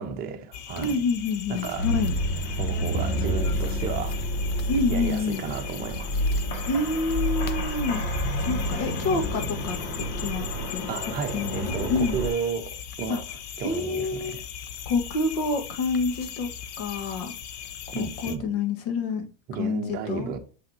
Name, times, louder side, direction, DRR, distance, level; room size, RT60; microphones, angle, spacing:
voice 1, 0.0-1.0 1.5-1.9 2.6-4.2 4.9-6.2 10.9-13.2 13.6-14.4 17.9-18.5 19.5-20.4, right 6 dB, 30° right, 1.0 m, -33 dB
sound 1, 0.5-18.4, left 8 dB, 35° left, 0.6 m, -38 dB
voice 2, 0.8-2.1 4.7-5.5 6.7-8.0 8.4-10.9 11.3-12.2 13.1-13.2 13.6-14.3 14.9-16.5 16.8-17.3 17.9-19.3 19.6-20.3, left 3 dB, 60° left, 1.7 m, -28 dB
sound 2, 1.8-12.3, equal, 75° left, 2.5 m, -29 dB
6.8 x 5.5 x 2.9 m
supercardioid pair, 155°, 30 cm